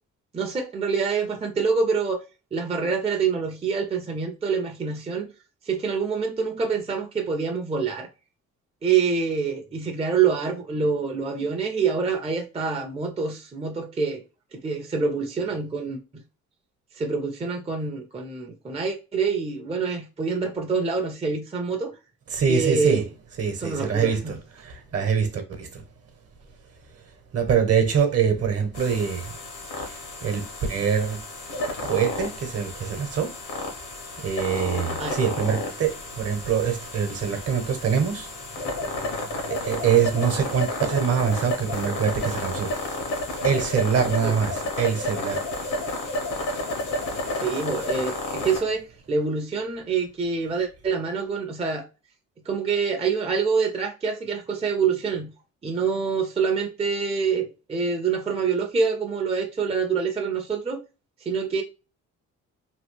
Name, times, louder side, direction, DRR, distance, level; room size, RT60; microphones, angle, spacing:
voice 1, 0.3-2.2 2.5-5.3 5.6-8.1 8.8-14.2 14.5-16.0 16.9-21.9 22.5-23.1 23.6-24.3 35.0-35.2 44.2-44.4 47.4-51.9 52.5-55.3 55.6-60.8 61.3-61.6, right 5 dB, 20° right, 0.5 m, -26 dB
voice 2, 22.3-23.0 23.4-25.8 27.3-29.4 29.8-31.2 31.8-33.4 34.2-38.3 39.5-42.7 43.4-45.4, right 7 dB, 55° right, 1.0 m, -24 dB
sound 1, 28.7-48.6, left 2 dB, 80° left, 1.1 m, -31 dB
3.0 x 2.3 x 3.3 m
cardioid pair, 90°, 30 cm